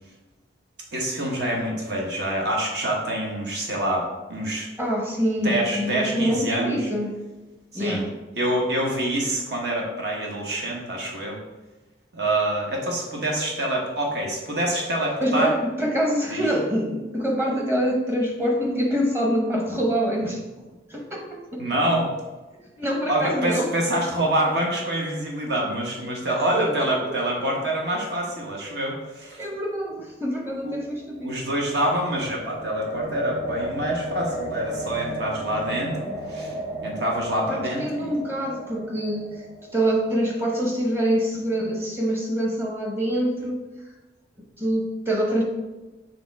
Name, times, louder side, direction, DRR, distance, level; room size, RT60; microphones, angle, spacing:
voice 1, 0.9-4.7 5.4-6.9 7.7-8.0 8.4-11.4 12.1-15.5 16.3-16.4 21.6-22.1 23.1-29.4 30.6-30.8 31.2-36.5 36.8-38.1, right 1 dB, 60° right, -1 dB, 1.2 m, -26 dB
voice 2, 4.8-7.1 7.7-8.1 15.2-20.4 20.9-21.6 22.8-23.7 26.3-27.2 29.4-31.4 37.5-39.4 39.7-43.6 44.6-45.4, equal, 10° right, 0 dB, 0.9 m, -25 dB
sound 1, 30.6-40.8, right 1 dB, 30° right, 1.5 m, -35 dB
7.0 x 3.2 x 4.6 m, 1.1 s
head